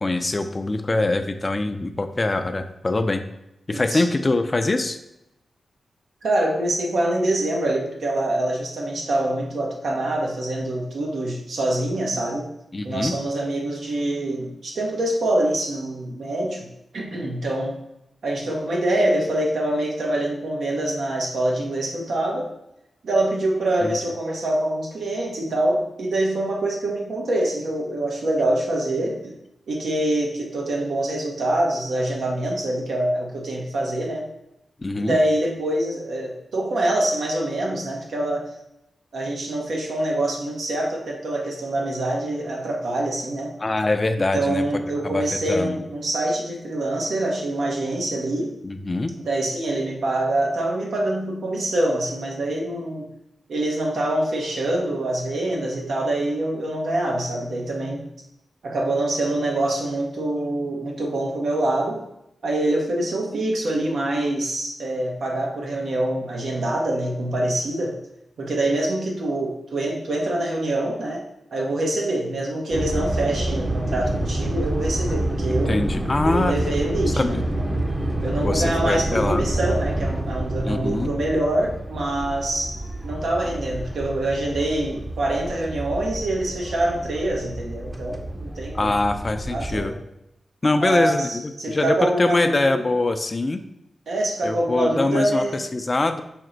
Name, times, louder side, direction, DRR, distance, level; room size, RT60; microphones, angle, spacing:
voice 1, 0.0-3.2 3.7-5.0 12.7-13.2 23.8-24.0 34.8-35.2 43.6-44.6 45.0-45.8 48.6-49.1 75.5-76.6 77.2-77.4 78.4-79.4 80.6-81.1 88.7-90.0 90.6-91.4 91.7-93.6 94.4-96.2, left 2 dB, 40° left, 8 dB, 0.4 m, -23 dB
voice 2, 3.7-4.0 6.2-12.5 12.8-16.7 16.9-17.8 18.2-22.5 23.0-29.3 29.7-34.3 35.0-38.5 39.1-43.5 44.3-48.5 49.3-53.1 53.5-58.1 58.6-62.0 62.4-68.0 68.4-75.8 76.2-77.7 78.2-82.8 83.0-88.9 89.5-90.0 90.8-92.9 94.1-95.6, right 1 dB, 75° right, 0 dB, 0.8 m, -25 dB
sound 1, 72.7-89.8, right 1 dB, 25° right, 0.7 m, -28 dB
4.2 x 2.2 x 3.8 m, 0.85 s
cardioid pair, 45°, 0 cm